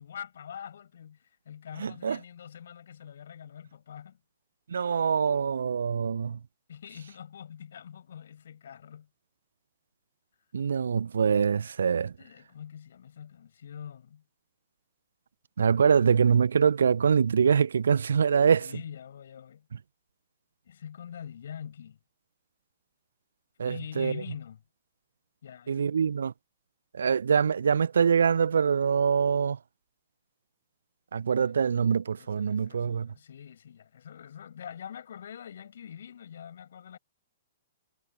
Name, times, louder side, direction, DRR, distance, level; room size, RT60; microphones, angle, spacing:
voice 1, 0.0-4.2 6.7-9.1 12.2-14.2 18.6-19.7 20.7-22.0 23.6-24.6 25.4-25.9 31.3-31.6 32.1-37.0, left 8 dB, 60° left, 7.1 m, -44 dB
voice 2, 1.8-2.2 4.7-6.4 10.5-12.1 15.6-18.7 23.6-24.1 25.7-26.3 26.9-29.6 31.1-33.1, right 6 dB, 65° right, 1.2 m, -24 dB
figure-of-eight pair, 110°, 0 cm